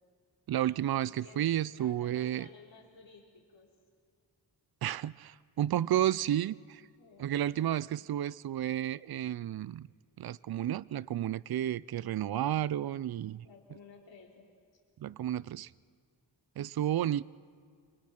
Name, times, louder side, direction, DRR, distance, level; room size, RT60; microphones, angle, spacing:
voice 1, 0.5-2.5 4.8-6.8 7.2-9.9 10.2-13.4 15.0-15.7 16.6-17.2, right 11 dB, 55° right, 0.5 m, -32 dB
voice 2, 1.0-1.4 1.8-3.7 5.9-6.0 7.0-7.6 8.0-8.1 12.7-13.0 13.4-14.8 17.0-17.2, left 4 dB, 70° left, 4.1 m, -56 dB
27.5 x 23.0 x 5.9 m
wide cardioid pair, 90°, 46 cm